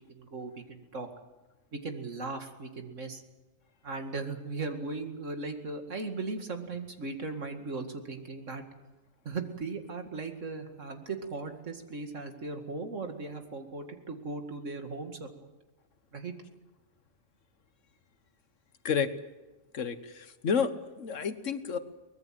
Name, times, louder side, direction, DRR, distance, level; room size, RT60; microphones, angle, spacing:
voice 1, 0.1-1.1 1.7-3.2 3.8-8.6 9.2-15.5 16.1-16.3, right 3 dB, 80° right, 5 dB, 2.5 m, -38 dB
voice 2, 19.7-21.8, left 6 dB, 80° left, 11 dB, 1.6 m, -30 dB
23.5 x 20.0 x 7.7 m, 1.1 s
omnidirectional pair, 1.3 m